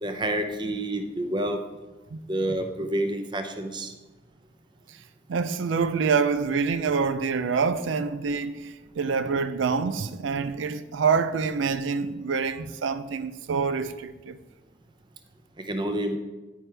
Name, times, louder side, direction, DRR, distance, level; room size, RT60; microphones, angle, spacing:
voice 1, 0.0-1.6 2.3-3.9 15.6-16.2, right 1 dB, 25° right, 0.7 m, -28 dB
voice 2, 5.3-14.4, right 5 dB, 85° right, 0.4 m, -26 dB
9.4 x 9.2 x 3.4 m
head